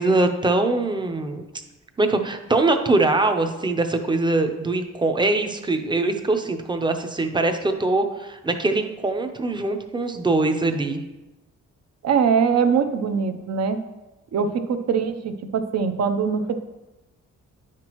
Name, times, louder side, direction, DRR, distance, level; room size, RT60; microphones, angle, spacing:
voice 1, 0.0-1.4 2.0-11.0, right 2 dB, 15° right, 6 dB, 0.6 m, -22 dB
voice 2, 12.0-13.8 14.3-16.5, right 6 dB, 60° right, 8 dB, 0.7 m, -22 dB
9.7 x 6.0 x 3.0 m, 1.0 s
wide cardioid pair, 145°, 30 cm